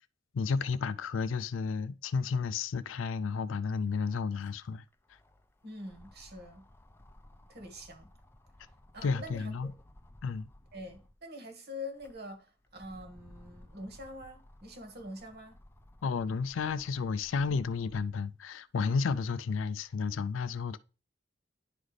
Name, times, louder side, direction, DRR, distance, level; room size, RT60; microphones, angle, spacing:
voice 1, 0.3-4.8 9.0-9.7 10.2-10.5 16.0-20.8, left 5 dB, 80° left, 0.4 m, -32 dB
sound 1, 3.6-11.2 11.7-18.2 18.7-19.9, left 1 dB, 10° left, 0.5 m, -57 dB
voice 2, 5.6-6.7 7.5-8.1 8.9-9.7 10.7-15.6, left 1 dB, 55° right, 1.6 m, -45 dB
10.5 x 4.0 x 3.2 m
head